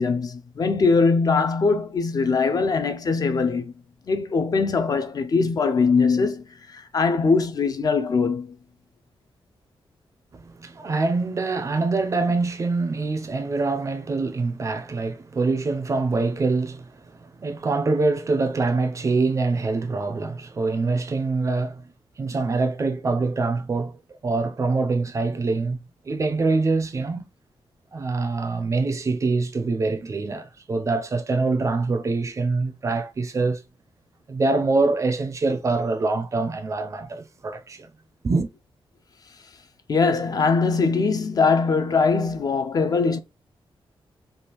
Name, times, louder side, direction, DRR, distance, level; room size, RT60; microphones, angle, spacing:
voice 1, 0.0-3.7 4.1-8.5 39.9-43.2, left 4 dB, 40° left, 0.3 m, -21 dB
voice 2, 10.3-21.8 22.2-27.3 27.9-33.6 34.3-37.9 38.2-38.5, right 3 dB, 30° right, 0.4 m, -24 dB
3.3 x 2.3 x 2.9 m
wide cardioid pair, 170°, 10 cm